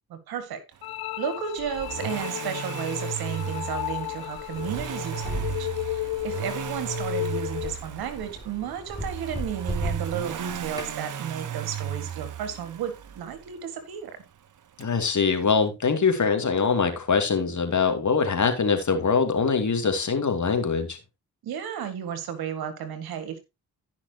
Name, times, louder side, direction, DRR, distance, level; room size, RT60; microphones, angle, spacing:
voice 1, 0.1-0.6 1.2-14.2 21.4-23.4, right 8 dB, 90° right, 1.9 m, -33 dB
sound 1, 0.8-7.8, left 17 dB, 85° left, 0.7 m, -34 dB
Accelerating revving vroom, 1.6-13.5 14.8-14.9, right 9 dB, 60° right, 1.0 m, -35 dB
sound 2, 4.4-11.0, equal, 10° right, 3.4 m, -37 dB
voice 2, 14.8-21.0, left 5 dB, 55° left, 2.7 m, -23 dB
15.5 x 5.9 x 2.9 m
supercardioid pair, 50°, 36 cm